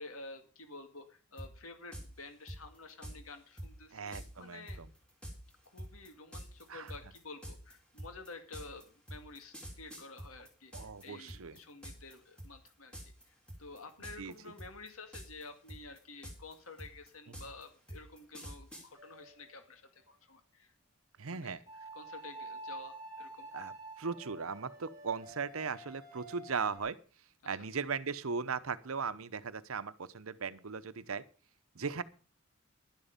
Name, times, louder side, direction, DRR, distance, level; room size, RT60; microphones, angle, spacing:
voice 1, 0.0-4.8 5.7-12.9 13.3-20.7 21.3-21.6 21.9-23.5, left 3 dB, 80° left, 7 dB, 1.9 m, -51 dB
sound 1, 1.4-1.5 1.9-2.1 2.5-3.2 3.6-3.7 4.1-4.3 4.7-11.0 11.3-12.1 12.4-12.7 12.9-13.2 13.5-14.3 14.6-15.4 15.7-18.9, equal, 5° left, 3.8 m, -46 dB
voice 2, 3.9-4.9 6.7-6.9 10.7-11.6 14.2-14.3 17.3-17.4 21.2-21.6 23.5-27.0 27.5-31.2 31.7-32.0, right 5 dB, 80° right, 14 dB, 0.8 m, -38 dB
sound 2, 18.9-19.6 21.7-26.8, right 2 dB, 20° right, 2.9 m, -48 dB
11.5 x 11.5 x 5.2 m, 0.37 s
head